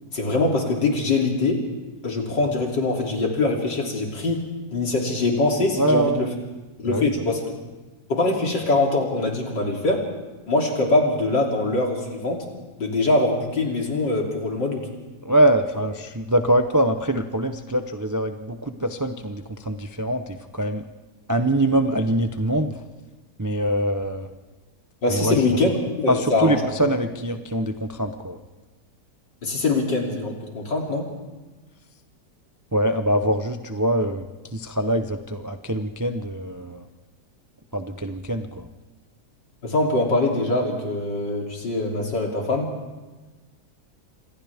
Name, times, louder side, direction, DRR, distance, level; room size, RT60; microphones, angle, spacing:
voice 1, 0.1-1.6 2.0-4.4 4.7-6.3 6.8-7.6 8.1-10.0 10.5-12.5 12.8-14.9 25.0-26.6 29.4-31.1 39.6-42.7, left 2 dB, 90° left, 0 dB, 3.8 m, -23 dB
voice 2, 5.7-6.3 6.9-7.1 15.2-20.8 21.3-22.8 23.4-24.3 25.1-25.4 26.1-28.4 32.7-34.3 34.5-36.9 37.7-38.7, right 1 dB, 30° right, 7 dB, 0.3 m, -23 dB
28.5 x 25.5 x 3.6 m, 1.2 s
omnidirectional pair, 1.9 m